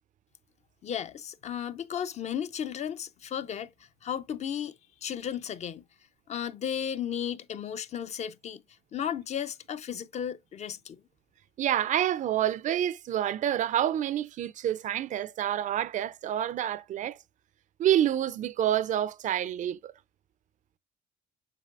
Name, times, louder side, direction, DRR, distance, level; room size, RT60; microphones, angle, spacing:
voice 1, 0.8-5.8 6.3-8.6 8.9-11.0, left 9 dB, 40° left, 0.5 m, -34 dB
voice 2, 11.6-17.2 17.8-19.9, right 11 dB, 50° right, 0.4 m, -28 dB
7.5 x 5.2 x 2.4 m
cardioid pair, 110°, 17 cm